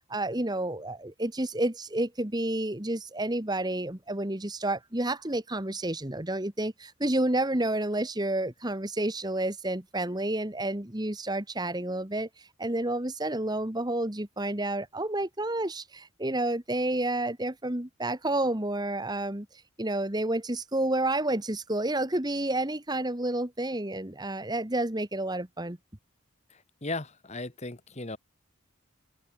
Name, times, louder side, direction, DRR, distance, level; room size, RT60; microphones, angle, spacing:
voice 1, 0.1-19.5 19.8-25.8, right 1 dB, 20° right, 1.5 m, -30 dB
voice 2, 26.5-28.2, left 2 dB, 30° left, 1.6 m, -37 dB
open air
head